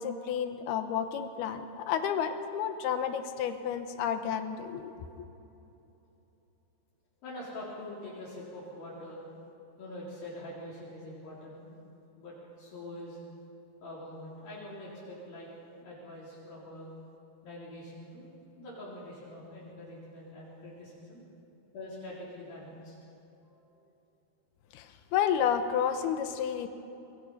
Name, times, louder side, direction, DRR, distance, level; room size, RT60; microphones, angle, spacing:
voice 1, 0.0-5.2 24.7-26.7, left 8 dB, 85° left, 8 dB, 3.0 m, -31 dB
voice 2, 7.2-9.2 9.8-11.8 12.2-13.2 13.8-16.9 17.4-18.3 18.6-21.2 21.7-23.0 23.4-23.8, left 1 dB, 65° left, -8 dB, 5.7 m, -44 dB
25.0 x 21.5 x 5.6 m, 2.9 s
omnidirectional pair, 4.5 m